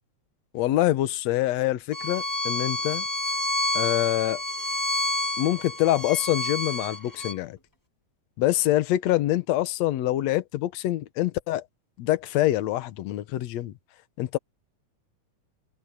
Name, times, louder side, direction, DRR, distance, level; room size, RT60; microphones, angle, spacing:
voice 1, 0.5-3.1 3.7-4.4 5.4-7.6 8.4-11.6 12.0-13.7 14.2-14.4, left 15 dB, 70° left, 2.1 m, -25 dB
Bowed string instrument, 1.9-7.3, left 1 dB, 10° left, 1.4 m, -29 dB
open air
omnidirectional pair, 3.5 m